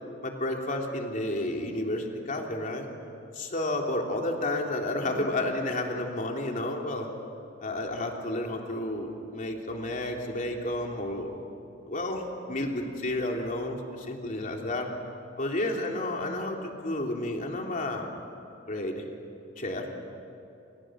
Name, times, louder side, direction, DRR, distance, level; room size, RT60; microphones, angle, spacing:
voice 1, 0.2-2.9 3.3-7.1 7.6-11.3 11.9-14.9 15.4-18.0 18.7-19.0 19.6-19.9, left 1 dB, 45° left, 1 dB, 3.3 m, -31 dB
29.5 x 28.0 x 6.4 m, 2.6 s
head